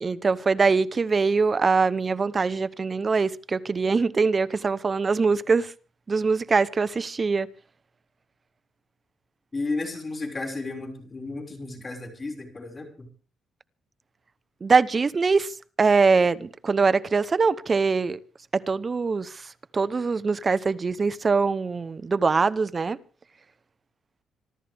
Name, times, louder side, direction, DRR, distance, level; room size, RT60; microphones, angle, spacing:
voice 1, 0.0-5.7 6.1-7.5 14.6-18.2 18.5-23.0, right 4 dB, 35° right, 1.0 m, -23 dB
voice 2, 9.5-13.1, left 3 dB, 25° left, 5.9 m, -33 dB
26.0 x 13.0 x 3.6 m
cardioid pair, 90°, 0 cm